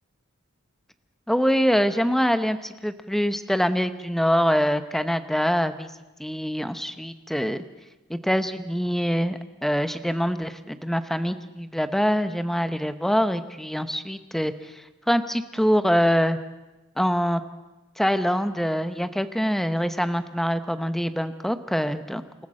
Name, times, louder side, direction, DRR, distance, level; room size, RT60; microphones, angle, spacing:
voice 1, 1.3-5.9 6.2-7.6 8.1-14.5 15.1-16.4 17.0-17.4 18.0-22.2, equal, ahead, 10 dB, 0.8 m, -24 dB
26.5 x 14.0 x 7.6 m, 1.1 s
head